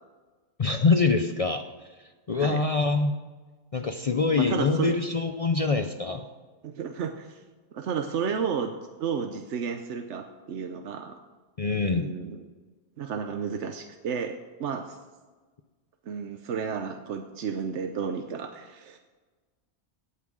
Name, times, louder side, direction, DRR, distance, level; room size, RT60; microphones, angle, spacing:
voice 1, 0.6-1.9 2.3-3.2 3.7-6.3 11.6-12.1, left 4 dB, 40° left, 6 dB, 0.6 m, -25 dB
voice 2, 4.4-5.0 6.6-7.4 7.7-8.7 9.0-11.2 11.9-12.4 13.0-15.0 16.1-19.0, right 6 dB, 80° right, 6 dB, 1.1 m, -32 dB
17.5 x 5.9 x 6.2 m, 1.3 s
omnidirectional pair, 1.2 m